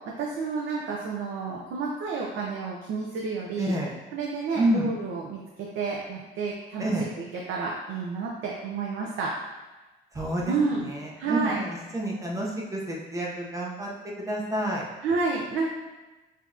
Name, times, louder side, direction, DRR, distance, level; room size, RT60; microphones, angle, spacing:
voice 1, 0.2-3.7 4.1-9.4 10.5-10.9 11.2-11.6 15.0-15.7, right 4 dB, 65° right, -2 dB, 0.6 m, -30 dB
voice 2, 3.6-3.9 4.6-4.9 6.8-7.1 10.1-10.5 10.9-13.9 14.3-14.9, right 1 dB, 15° right, -2 dB, 0.7 m, -28 dB
5.6 x 2.7 x 2.4 m, 1.2 s
cardioid pair, 155°, 21 cm